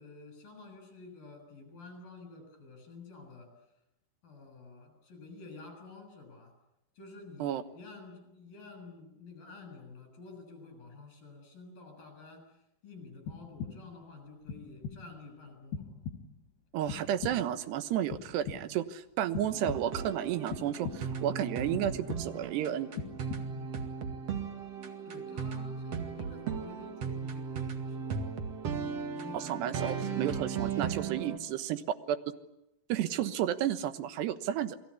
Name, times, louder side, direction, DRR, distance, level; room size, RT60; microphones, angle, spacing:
voice 1, 0.0-3.5 4.2-6.6 7.0-12.6 12.8-16.1 23.6-23.9 25.1-28.4 29.2-31.3, left 3 dB, 60° left, 6 dB, 8.6 m, -50 dB
sound 1, 13.3-14.1 14.5-15.2 15.7-16.5 16.9-17.7 18.1-18.9 19.3-20.1 20.5-21.3 21.7-22.6 23.0-23.8, left 5 dB, 90° left, 3.3 m, -42 dB
voice 2, 16.7-22.9 29.3-32.2 32.9-34.8, right 11 dB, 85° right, 11 dB, 3.4 m, -32 dB
sound 2, 19.5-31.4, right 6 dB, 45° right, 2.7 m, -37 dB
29.0 x 21.5 x 8.5 m, 0.87 s
omnidirectional pair, 4.7 m